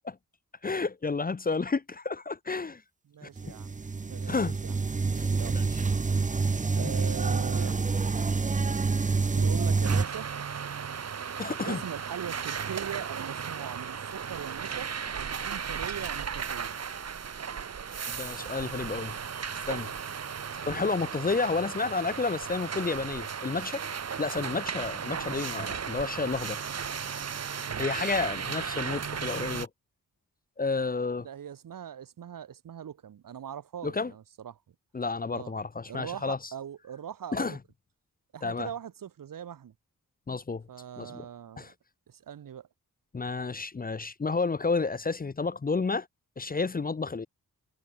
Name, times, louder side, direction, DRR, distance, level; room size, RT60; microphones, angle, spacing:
voice 1, 0.6-2.8 3.2-3.3 4.3-4.6 5.2-5.3 5.5-5.7 6.8-6.9 11.4-11.8 18.1-19.1 19.7-19.9 20.6-23.8 24.2-26.6 27.8-29.7 30.6-31.3 33.8-34.1 34.9-36.4 37.3-37.6 38.4-38.7 40.3-40.6 41.0-41.1 41.6-41.7 43.1-46.1 46.4-47.3, left 4 dB, 25° left, 0.6 m, -31 dB
voice 2, 3.1-4.4 4.6-4.7 5.4-5.8 6.8-7.8 9.3-10.3 11.7-14.9 15.2-16.8 25.2-25.3 31.2-34.6 35.3-35.5 35.9-37.6 38.3-39.7 40.7-41.7 42.1-42.7, right 9 dB, 75° right, 1.0 m, -41 dB
sound 1, 3.4-10.0, right 4 dB, 20° right, 0.6 m, -27 dB
sound 2, 9.8-29.7, right 7 dB, 50° right, 0.9 m, -35 dB
cardioid pair, 50°, 34 cm